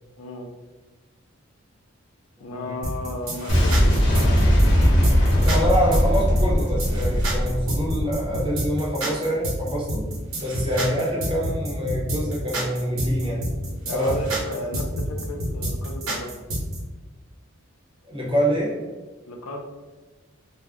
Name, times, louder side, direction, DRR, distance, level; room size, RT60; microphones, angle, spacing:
voice 1, 0.2-0.5 2.4-4.4 13.2-13.5 13.9-16.4 19.3-19.6, left 2 dB, 85° left, 3 dB, 0.4 m, -34 dB
voice 2, 2.4-2.7 5.4-10.1 10.4-13.4 13.9-14.2 18.1-18.8, equal, 25° right, -4 dB, 0.7 m, -25 dB
sound 1, 2.8-16.8, right 1 dB, 90° right, 0.9 m, -28 dB
Boom, 3.5-8.4, equal, 55° left, 0.9 m, -20 dB
2.4 x 2.1 x 3.4 m, 1.3 s
head